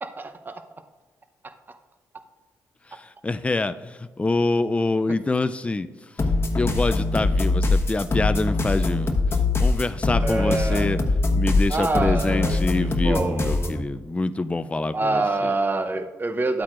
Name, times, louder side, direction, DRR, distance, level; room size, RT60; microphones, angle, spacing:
voice 1, 0.0-0.6 10.2-10.9 11.7-13.7 14.9-16.6, right 3 dB, 25° right, 8 dB, 0.8 m, -26 dB
voice 2, 2.9-5.9 6.1-6.3 6.6-9.2 9.6-11.0 11.3-15.5, left 3 dB, 15° left, 12 dB, 0.4 m, -26 dB
sound 1, 6.2-13.8, left 2 dB, 35° left, 1.1 m, -22 dB
12.0 x 8.4 x 2.5 m, 1.2 s
supercardioid pair, 65°, 7 cm